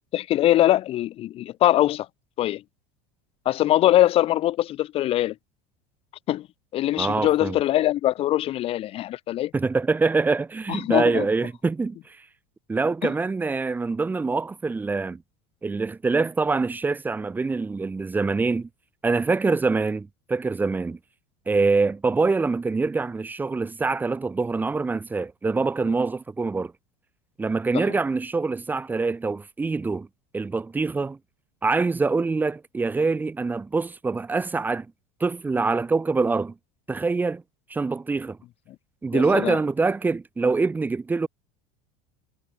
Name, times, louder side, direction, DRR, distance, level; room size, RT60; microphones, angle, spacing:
voice 1, 0.0-2.1 2.4-2.6 3.5-5.3 6.3-6.5 6.7-9.5 10.7-11.3 13.0-13.1 27.7-27.8 39.1-39.6, left 14 dB, 35° left, 2.6 m, -22 dB
voice 2, 7.0-7.6 9.5-12.2 12.7-15.2 15.6-18.7 19.0-21.0 21.5-26.7 27.4-30.1 30.3-31.2 31.6-34.9 35.2-36.5 36.9-37.4 37.7-38.4 39.0-41.3, right 4 dB, 10° right, 3.4 m, -25 dB
supercardioid pair, 160°, 16 cm